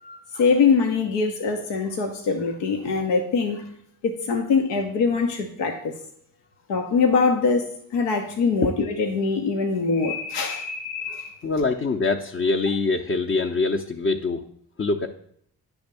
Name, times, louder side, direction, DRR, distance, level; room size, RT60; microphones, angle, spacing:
voice 1, 0.0-3.7 4.0-5.9 6.7-11.4, left 4 dB, 85° left, 3 dB, 0.9 m, -23 dB
voice 2, 11.4-14.5 14.8-15.1, left 3 dB, 30° left, 1 dB, 0.7 m, -24 dB
9.4 x 3.5 x 6.7 m, 0.66 s
supercardioid pair, 60°, 41 cm